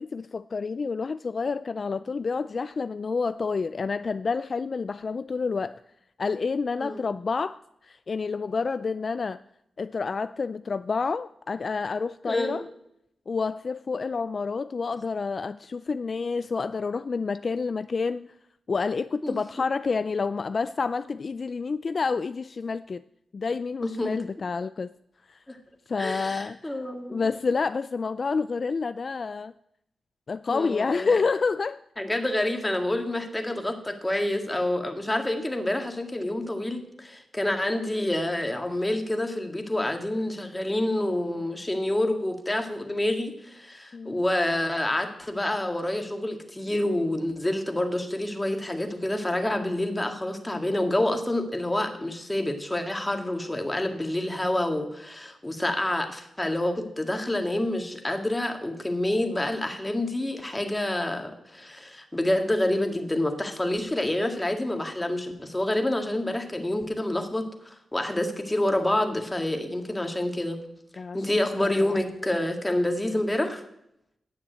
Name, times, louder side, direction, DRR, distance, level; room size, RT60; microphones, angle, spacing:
voice 1, 0.0-5.8 6.2-9.4 9.8-12.6 13.3-18.3 18.7-23.0 23.3-24.9 25.3-25.4 25.9-26.7 27.1-29.5 30.3-31.8 43.9-44.2 71.0-71.2 71.6-71.7, left 4 dB, 55° left, 14 dB, 0.3 m, -29 dB
voice 2, 12.3-12.7 19.2-19.4 23.8-24.1 25.5-25.6 26.0-27.2 30.5-31.1 32.0-70.6 71.1-73.6, left 1 dB, 15° left, 5 dB, 1.9 m, -28 dB
9.6 x 7.2 x 7.9 m, 0.79 s
cardioid pair, 55°, 0 cm